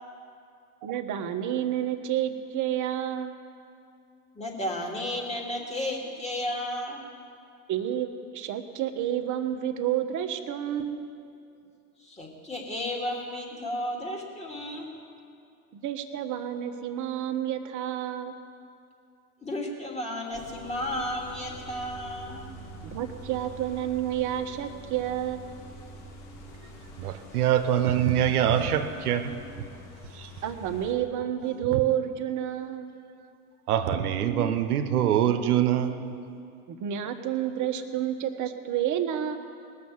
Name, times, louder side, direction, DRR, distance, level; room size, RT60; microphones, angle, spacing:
voice 1, 0.8-3.3 7.7-11.0 15.7-18.3 22.8-25.4 30.4-32.9 36.7-39.4, right 11 dB, 40° right, 6 dB, 1.2 m, -30 dB
voice 2, 4.3-7.0 12.0-14.9 19.4-22.5, left 1 dB, 15° left, -1 dB, 2.9 m, -33 dB
sound 1, 20.3-30.9, equal, 45° left, 4.3 m, -45 dB
voice 3, 27.0-29.4 30.1-30.3 31.5-31.8 32.4-32.7 33.7-36.2, right 10 dB, 85° right, 8 dB, 1.0 m, -25 dB
19.5 x 6.8 x 7.2 m, 2.5 s
hypercardioid pair, 90°, 44 cm